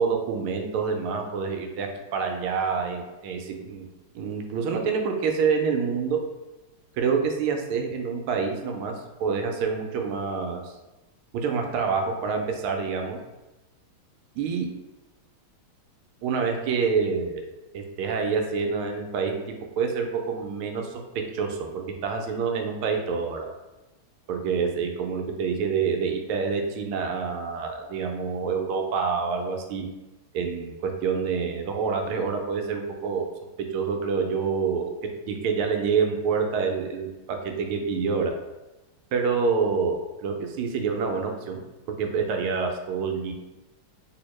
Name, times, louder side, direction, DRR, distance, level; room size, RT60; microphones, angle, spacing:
voice 1, 0.0-3.9 4.1-6.2 6.9-8.9 9.2-10.7 11.3-13.2 14.4-14.7 16.2-17.4 17.7-19.3 19.8-23.5 24.3-29.9 30.3-33.3 33.7-34.9 35.3-38.3 39.1-41.6 41.9-43.3, right 5 dB, 80° right, 3 dB, 1.4 m, -27 dB
3.4 x 2.8 x 3.1 m, 1.0 s
omnidirectional pair, 2.3 m